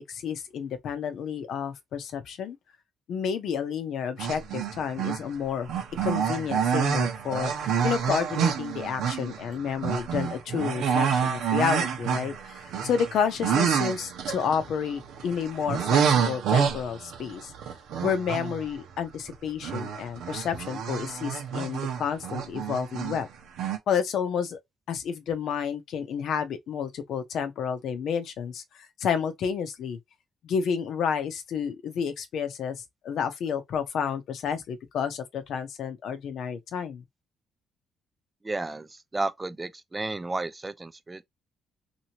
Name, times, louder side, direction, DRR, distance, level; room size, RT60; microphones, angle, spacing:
voice 1, 0.0-2.6 3.1-5.7 6.0-17.5 18.0-23.3 23.9-24.6 24.9-28.6 29.0-30.0 30.4-32.8 33.0-37.0, left 7 dB, 75° left, 0.7 m, -30 dB
sound 1, 4.2-5.3 5.7-19.3 19.6-23.2 23.6-23.8, right 7 dB, 85° right, 0.8 m, -28 dB
voice 2, 38.4-41.3, right 2 dB, 20° right, 0.4 m, -32 dB
3.0 x 2.7 x 2.7 m
cardioid pair, 90°, 0 cm